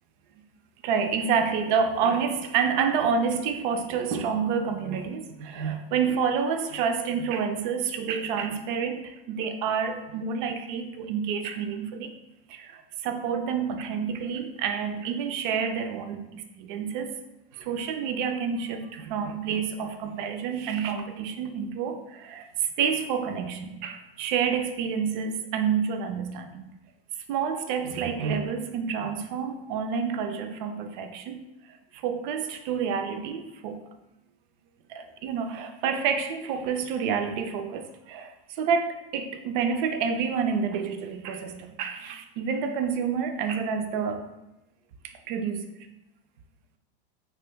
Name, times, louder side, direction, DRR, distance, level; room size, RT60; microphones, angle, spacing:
voice 1, 0.8-12.1 12.5-17.1 17.5-26.7 27.3-31.4 31.9-33.8 34.9-44.3 45.3-45.7, right 6 dB, 60° right, 7 dB, 0.5 m, -28 dB
6.2 x 2.2 x 2.2 m, 0.97 s
supercardioid pair, 125°, 29 cm